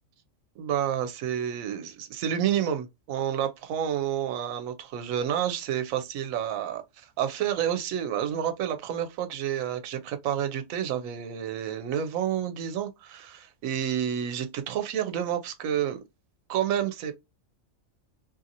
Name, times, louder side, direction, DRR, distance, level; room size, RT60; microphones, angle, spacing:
voice 1, 0.6-16.0 16.5-17.1, right 9 dB, 80° right, 1.0 m, -29 dB
2.7 x 2.6 x 2.5 m
omnidirectional pair, 1.4 m